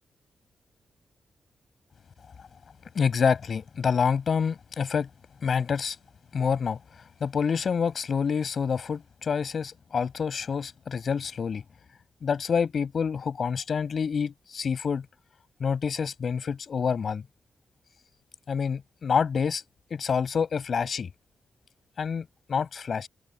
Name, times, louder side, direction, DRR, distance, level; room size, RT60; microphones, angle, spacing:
voice 1, 2.9-5.1 5.4-6.0 6.3-6.8 7.2-11.6 12.2-15.1 15.6-17.2 18.5-19.6 19.9-21.1 22.0-23.1, left 6 dB, 55° left, 7.1 m, -27 dB
open air
wide cardioid pair, 135°, 0 cm